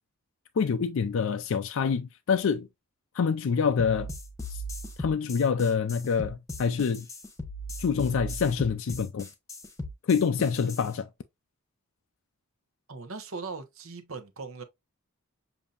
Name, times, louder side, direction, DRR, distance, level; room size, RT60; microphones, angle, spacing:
voice 1, 0.6-2.7 3.1-4.1 4.5-4.6 5.0-7.1 7.8-9.3 10.1-11.1, left 6 dB, 65° left, 0.4 m, -26 dB
sound 1, 3.8-10.9, equal, 15° left, 1.0 m, -38 dB
voice 2, 12.9-14.6, right 4 dB, 65° right, 1.0 m, -39 dB
7.0 x 2.7 x 2.5 m
head